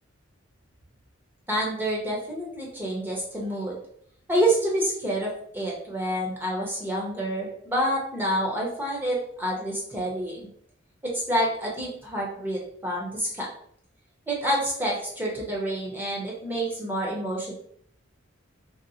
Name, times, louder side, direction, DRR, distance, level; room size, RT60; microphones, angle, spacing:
voice 1, 1.5-3.8 4.3-10.5 11.0-13.5 14.3-17.5, right 1 dB, 10° right, -3 dB, 0.7 m, -28 dB
2.7 x 2.0 x 4.0 m, 0.64 s
head